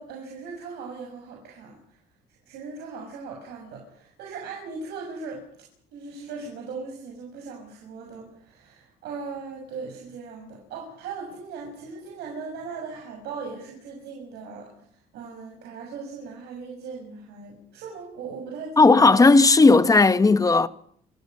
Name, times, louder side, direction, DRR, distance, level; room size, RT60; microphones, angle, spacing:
voice 1, 0.0-2.0 2.4-5.4 5.9-14.7 15.1-19.1, right 4 dB, 80° right, 6.8 m, -38 dB
voice 2, 18.8-20.7, left 3 dB, 20° left, 1.1 m, -15 dB
28.0 x 13.0 x 9.6 m
cardioid pair, 110°, 17 cm